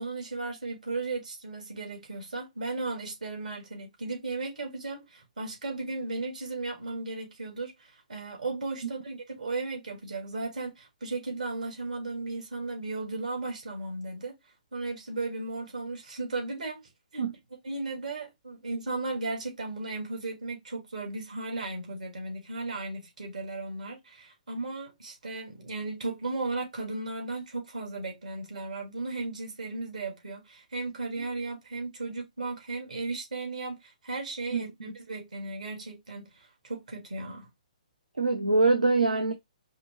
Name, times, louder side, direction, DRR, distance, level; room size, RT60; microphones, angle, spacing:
voice 1, 0.0-14.4 14.7-16.8 17.1-17.2 17.6-37.5, right 3 dB, 70° right, 1.9 m, -35 dB
voice 2, 34.5-34.9 38.2-39.3, right 3 dB, 90° right, 0.7 m, -24 dB
4.9 x 2.3 x 2.9 m
figure-of-eight pair, 130°, 4 cm